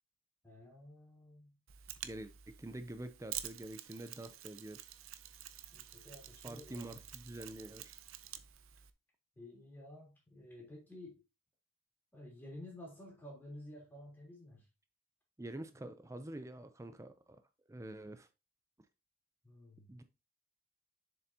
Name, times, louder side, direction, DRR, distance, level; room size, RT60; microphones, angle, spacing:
voice 1, 0.4-1.6 5.6-7.0 9.3-11.2 12.1-14.7 19.4-19.9, left 1 dB, 10° left, 3.3 m, -52 dB
Mechanisms, 1.7-8.9, right 12 dB, 85° right, 0.6 m, -49 dB
voice 2, 2.0-4.9 6.4-8.0 15.4-17.4 17.7-18.3 19.9-20.0, right 1 dB, 15° right, 0.5 m, -47 dB
6.9 x 6.9 x 2.8 m
head